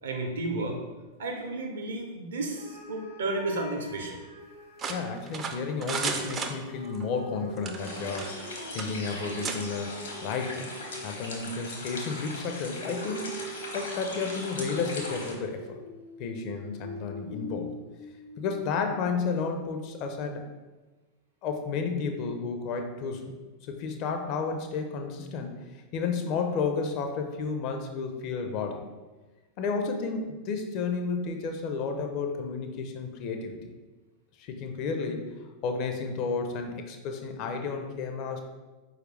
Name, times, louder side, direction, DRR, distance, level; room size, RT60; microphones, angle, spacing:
voice 1, 0.0-0.8 1.2-4.2, right 2 dB, 65° right, 2 dB, 0.6 m, -32 dB
sound 1, 2.5-5.5 6.5-11.3 12.7-18.8, equal, 90° left, 1.0 m, -44 dB
sound 2, 4.8-7.0 7.6-8.5 8.8-8.9 9.4-9.6, right 5 dB, 25° right, 0.3 m, -33 dB
voice 2, 4.9-10.7 11.0-13.4 13.7-15.6 16.2-17.7 18.4-20.4 21.4-23.3 23.7-25.6 25.9-28.8 29.6-33.6 34.4-35.3 35.6-38.4, left 5 dB, 40° left, 5 dB, 0.4 m, -32 dB
sound 3, 7.8-15.3, left 2 dB, 65° left, 0.8 m, -39 dB
4.5 x 2.4 x 3.2 m, 1.2 s
figure-of-eight pair, 90°, 0 cm